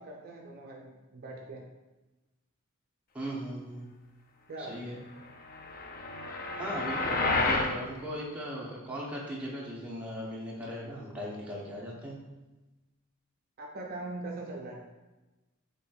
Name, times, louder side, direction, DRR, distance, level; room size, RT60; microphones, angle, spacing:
voice 1, 0.0-1.6 4.5-4.8 6.3-6.6 13.6-14.8, right 2 dB, 45° right, -1 dB, 0.4 m, -41 dB
voice 2, 3.1-3.9 4.6-5.0 6.5-12.2, equal, 5° right, -5 dB, 0.6 m, -38 dB
sound 1, 5.5-7.8, left 3 dB, 40° left, 0.3 m, -30 dB
4.2 x 3.3 x 2.3 m, 1.1 s
head